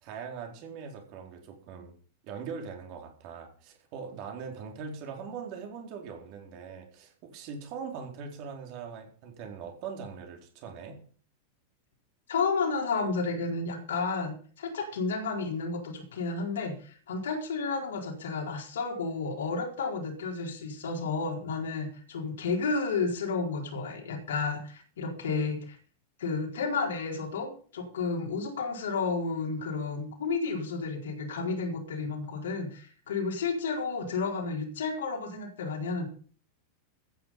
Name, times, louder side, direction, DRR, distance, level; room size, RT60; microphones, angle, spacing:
voice 1, 0.0-1.9 2.2-11.0, right 6 dB, 45° right, 2 dB, 4.4 m, -41 dB
voice 2, 12.3-25.8 26.2-36.1, left 4 dB, 65° left, 1 dB, 4.3 m, -32 dB
15.0 x 9.9 x 5.6 m, 0.43 s
figure-of-eight pair, 90°, 0 cm